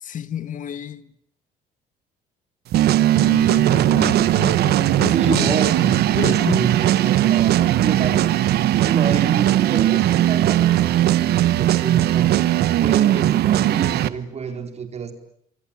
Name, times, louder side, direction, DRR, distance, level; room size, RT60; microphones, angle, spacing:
voice 1, 0.0-1.1 3.1-6.7, left 9 dB, 50° left, 1.7 m, -31 dB
sound 1, 2.7-14.1, right 13 dB, 70° right, 1.3 m, -18 dB
voice 2, 5.1-12.3 12.8-15.1, right 5 dB, 40° right, 4.2 m, -28 dB
27.0 x 25.0 x 8.7 m
cardioid pair, 110°, 17 cm